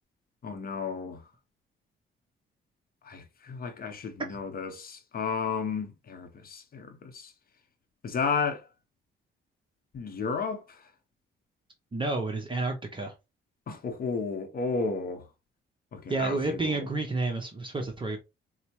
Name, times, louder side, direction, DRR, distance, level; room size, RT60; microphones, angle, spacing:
voice 1, 0.4-1.2 3.0-7.3 8.0-8.7 9.9-10.9 13.7-15.3 15.9-16.9, left 5 dB, 50° left, 0.7 m, -33 dB
voice 2, 11.9-13.1 16.1-18.2, right 2 dB, 25° right, 0.8 m, -30 dB
4.3 x 2.1 x 2.9 m
cardioid pair, 90°, 20 cm